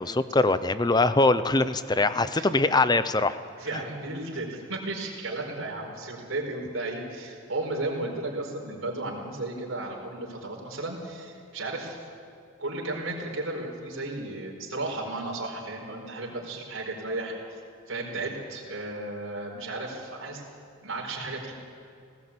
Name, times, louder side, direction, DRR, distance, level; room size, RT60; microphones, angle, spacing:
voice 1, 0.0-3.4 3.7-3.8, left 2 dB, 20° left, 13 dB, 0.6 m, -23 dB
voice 2, 2.0-2.5 3.6-12.0 12.6-17.3 17.9-20.4 20.8-21.5, right 2 dB, 65° right, -2 dB, 4.7 m, -34 dB
19.0 x 18.0 x 8.5 m, 2.3 s
head